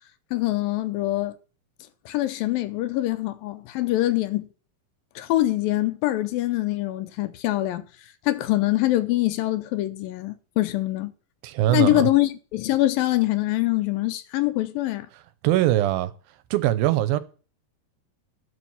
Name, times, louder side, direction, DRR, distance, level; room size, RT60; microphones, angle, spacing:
voice 1, 0.3-1.4 2.1-4.5 5.2-7.9 8.3-11.1 11.7-15.1, left 16 dB, 80° left, 2.4 m, -24 dB
voice 2, 11.4-12.1 15.4-16.1 16.5-17.2, right 14 dB, 85° right, 2.5 m, -21 dB
12.0 x 6.3 x 7.0 m
omnidirectional pair, 4.2 m